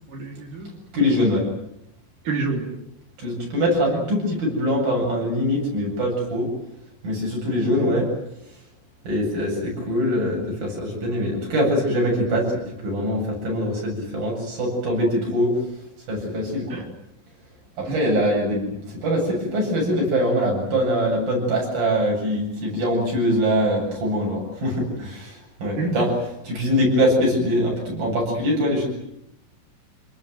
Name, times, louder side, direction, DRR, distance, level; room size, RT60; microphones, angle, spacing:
voice 1, 0.1-0.7 2.3-2.8 3.9-4.0 7.6-7.9 16.7-16.9 17.9-18.0 25.7-25.9, right 3 dB, 60° right, 1 dB, 5.2 m, -28 dB
voice 2, 0.9-1.4 3.2-6.5 7.0-8.0 9.0-15.5 16.1-16.8 17.8-26.1 26.4-28.9, equal, 80° right, -2 dB, 9.8 m, -23 dB
27.5 x 20.0 x 9.3 m, 0.81 s
omnidirectional pair, 4.1 m